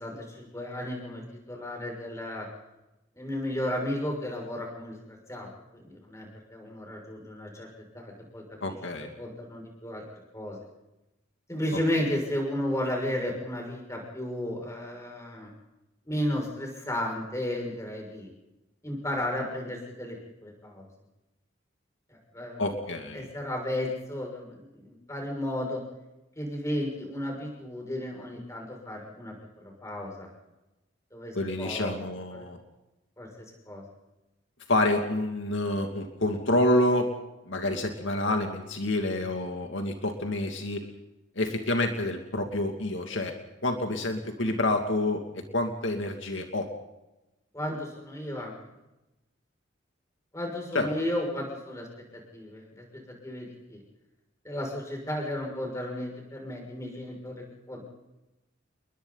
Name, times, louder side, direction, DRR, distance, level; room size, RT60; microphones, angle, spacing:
voice 1, 0.0-2.5 3.1-8.6 9.2-10.0 10.3-10.6 11.5-15.5 16.0-18.3 18.8-20.8 22.1-22.6 23.1-25.8 26.4-30.3 31.1-32.5 33.2-33.8 47.5-48.5 50.3-51.9 52.1-53.8 54.4-57.8, left 1 dB, 15° left, 0 dB, 6.5 m, -34 dB
voice 2, 8.6-9.1 22.6-23.3 31.3-32.6 34.7-37.1 37.5-40.8 41.4-43.3 43.6-45.3 45.5-46.7 50.7-50.9, left 1 dB, 70° left, 4 dB, 2.6 m, -28 dB
29.5 x 22.5 x 4.1 m, 0.98 s
head